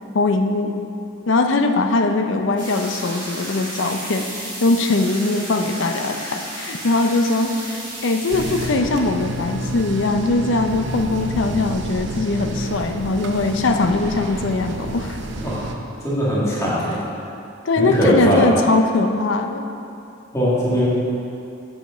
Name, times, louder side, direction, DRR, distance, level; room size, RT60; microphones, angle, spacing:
voice 1, 0.1-0.7 1.3-15.2 17.6-19.7, left 2 dB, 70° left, 6 dB, 0.6 m, -21 dB
sound 1, 2.6-8.7, right 1 dB, 25° right, 2.1 m, -33 dB
sound 2, 8.3-15.7, right 1 dB, 65° right, 0.6 m, -29 dB
voice 2, 16.0-17.0 17.8-18.5 20.3-20.9, equal, 15° left, -9 dB, 1.8 m, -20 dB
8.6 x 5.1 x 5.6 m, 2.7 s
head